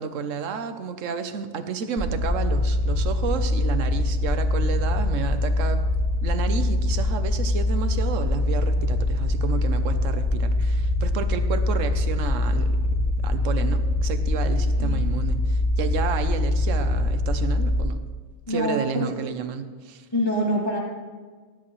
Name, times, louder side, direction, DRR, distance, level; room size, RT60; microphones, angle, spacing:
voice 1, 0.0-5.8 6.2-12.9 13.2-18.0 18.5-20.0, right 6 dB, 65° right, 9 dB, 1.2 m, -31 dB
sound 1, 2.0-17.8, left 1 dB, 15° right, 1.9 m, -23 dB
voice 2, 18.5-19.1 20.1-20.8, equal, 15° left, -6 dB, 2.8 m, -25 dB
19.0 x 10.5 x 3.2 m, 1.5 s
omnidirectional pair, 1.5 m